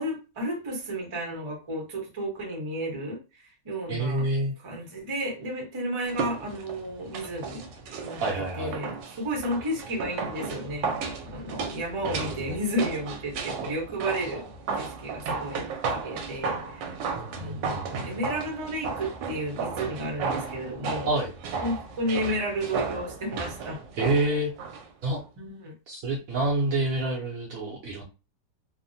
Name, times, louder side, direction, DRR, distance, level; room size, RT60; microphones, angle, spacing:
voice 1, 0.0-4.2 4.6-7.6 8.0-8.2 8.6-14.4 14.7-15.6 15.9-17.0 17.3-21.1 21.6-23.8 25.4-25.7, right 1 dB, 30° right, -1 dB, 0.6 m, -32 dB
voice 2, 3.9-4.5 8.2-8.7 12.0-12.2 12.4-12.6 17.3-17.9 21.1-21.3 24.0-24.5 25.0-25.2 25.9-28.0, right 2 dB, 65° right, -2 dB, 0.9 m, -27 dB
sound 1, 6.1-24.9 25.2-25.3, right 5 dB, 85° right, 1.3 m, -34 dB
3.3 x 2.1 x 2.6 m, 0.31 s
omnidirectional pair, 1.9 m